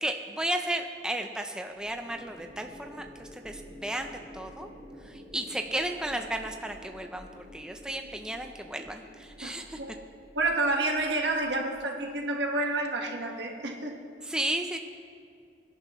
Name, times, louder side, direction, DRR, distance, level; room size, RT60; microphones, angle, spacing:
voice 1, 0.0-4.7 5.0-9.8 14.2-14.8, right 1 dB, 5° right, 4 dB, 0.5 m, -34 dB
sound 1, 1.7-12.2, equal, 30° right, 2.3 m, -50 dB
voice 2, 9.4-9.9 10.3-14.0, right 2 dB, 85° right, 2 dB, 1.5 m, -29 dB
23.0 x 10.5 x 3.1 m, 2.3 s
head